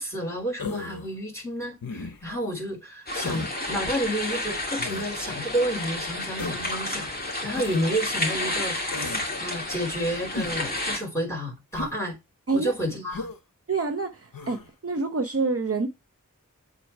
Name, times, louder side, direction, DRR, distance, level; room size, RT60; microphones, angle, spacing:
voice 1, 0.0-7.1 7.4-12.2 12.5-13.3, equal, 10° left, 4.3 m, -30 dB
Human voice, 0.6-1.1 1.8-2.3 3.2-3.5 4.8-5.1 6.4-6.7 7.5-7.8 8.9-9.3 10.3-10.7 11.7-12.0 13.1-13.4 14.3-14.7, left 3 dB, 85° left, 0.9 m, -35 dB
Loch Tay, 3.1-11.0, left 2 dB, 25° left, 2.4 m, -31 dB
voice 2, 13.7-15.9, right 4 dB, 45° right, 0.8 m, -27 dB
7.5 x 4.0 x 4.6 m
wide cardioid pair, 60°, 33 cm